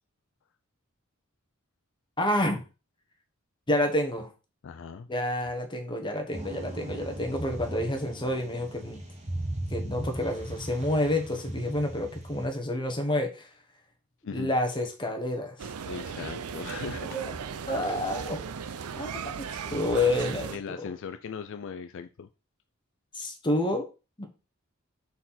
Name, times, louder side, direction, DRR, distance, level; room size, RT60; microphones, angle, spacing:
voice 1, 2.2-2.6 3.7-4.3 5.1-9.0 9.7-13.5 14.3-15.7 17.1-17.3 17.7-18.4 19.0-19.4 19.7-20.9 23.1-23.9 24.2-24.3, left 1 dB, 20° left, 1.2 m, -29 dB
voice 2, 4.6-5.1 14.2-14.6 15.9-17.2 17.7-18.1 20.5-22.3, left 6 dB, 60° left, 0.4 m, -39 dB
sound 1, 6.3-12.5, right 1 dB, 30° right, 1.4 m, -38 dB
sound 2, 15.6-20.6, right 6 dB, 85° right, 0.5 m, -37 dB
4.4 x 4.2 x 5.7 m
head